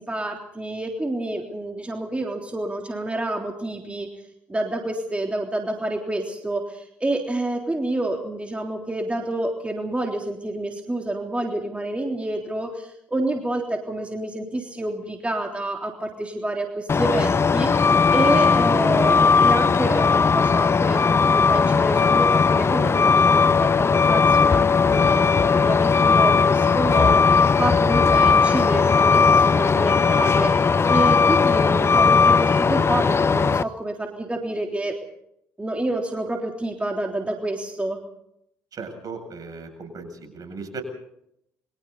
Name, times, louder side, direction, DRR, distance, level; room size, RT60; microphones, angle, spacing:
voice 1, 0.0-4.1 4.5-35.0 35.6-38.0, right 1 dB, 15° right, 1 dB, 3.6 m, -28 dB
Truck, 16.9-33.6, left 5 dB, 30° left, 0.8 m, -18 dB
voice 2, 38.7-40.8, right 4 dB, 50° right, 6 dB, 7.8 m, -37 dB
29.0 x 24.0 x 4.2 m, 0.76 s
hypercardioid pair, 50°, 8 cm